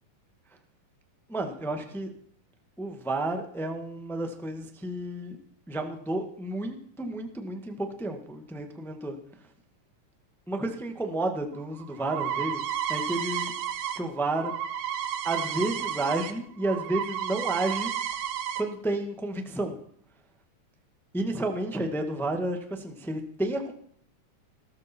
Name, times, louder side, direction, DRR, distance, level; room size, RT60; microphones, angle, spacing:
voice 1, 1.3-2.1 2.8-5.4 5.7-9.2 10.5-13.5 13.9-14.5 15.2-17.9 18.6-19.8 21.1-23.7, right 2 dB, ahead, 5 dB, 0.6 m, -31 dB
sound 1, 11.5-16.3 16.6-18.6, right 9 dB, 90° right, 3.0 m, -32 dB
18.0 x 14.5 x 4.5 m, 0.62 s
omnidirectional pair, 3.7 m